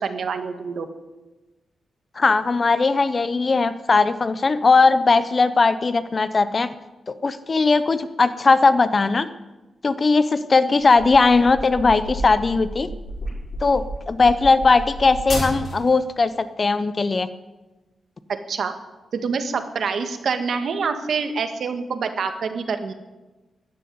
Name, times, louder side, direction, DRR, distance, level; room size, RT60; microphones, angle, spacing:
voice 1, 0.0-0.9 18.3-18.7 19.1-22.9, right 5 dB, 65° right, 7 dB, 1.6 m, -26 dB
voice 2, 2.2-6.7 7.1-9.3 9.8-12.9 13.6-17.3, left 4 dB, 35° left, 13 dB, 0.8 m, -18 dB
sound 1, 10.8-16.0, equal, 55° left, 6.4 m, -31 dB
14.0 x 10.0 x 9.5 m, 1.1 s
wide cardioid pair, 125°, 0 cm